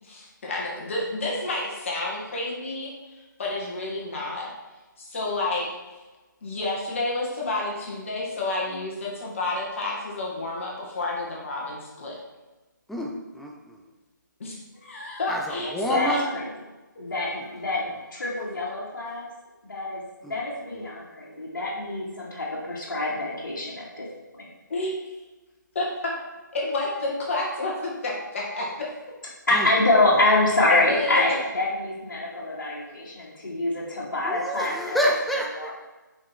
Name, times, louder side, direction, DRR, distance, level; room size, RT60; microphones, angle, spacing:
voice 1, 0.0-4.5 5.0-5.7 6.4-12.2 14.4-14.5 14.8-16.2 24.7-24.9 25.7-26.1 26.5-28.9 30.7-31.4, left 2 dB, 40° left, -3 dB, 2.2 m, -30 dB
voice 2, 12.9-13.8 15.3-16.3 20.2-20.4 20.7-20.9 29.5-29.7 34.2-35.7, equal, ahead, 0 dB, 0.4 m, -28 dB
voice 3, 15.6-16.4 17.0-19.3 19.6-24.1 24.4-24.5 29.5-35.1 35.6-35.7, left 2 dB, 60° left, -8 dB, 2.5 m, -26 dB
7.3 x 5.5 x 4.8 m, 1.1 s
figure-of-eight pair, 155°, 11 cm